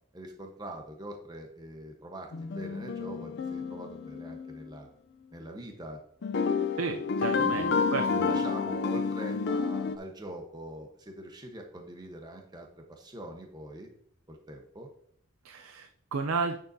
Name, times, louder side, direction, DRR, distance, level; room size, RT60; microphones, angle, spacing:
voice 1, 0.1-4.9 5.3-6.0 7.4-7.8 8.2-13.9 14.3-14.9, right 1 dB, 20° right, 2 dB, 1.0 m, -43 dB
sound 1, 2.3-4.7 6.2-10.0, left 5 dB, 55° left, 0.4 m, -30 dB
voice 2, 6.8-8.4 15.4-16.6, right 4 dB, 80° right, 6 dB, 0.5 m, -33 dB
9.5 x 6.6 x 2.7 m, 0.64 s
head